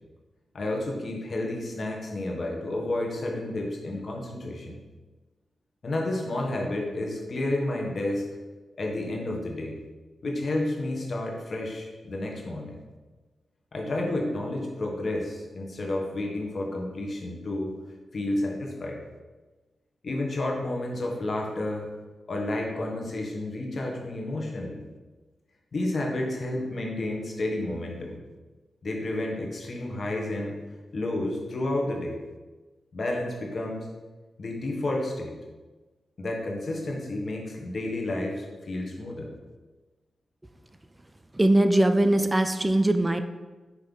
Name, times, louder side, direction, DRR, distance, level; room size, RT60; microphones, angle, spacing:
voice 1, 0.5-4.8 5.8-8.3 8.8-9.8 10.2-12.8 13.7-17.7 18.1-19.0 20.0-21.9 22.3-24.8 25.7-28.2 28.8-30.6 30.9-32.2 32.9-33.9 34.4-35.4 36.2-39.3, left 1 dB, 55° left, 0 dB, 1.4 m, -31 dB
voice 2, 41.4-43.2, right 1 dB, 20° right, 9 dB, 0.4 m, -21 dB
6.3 x 3.2 x 5.5 m, 1.2 s
cardioid pair, 50°, 0 cm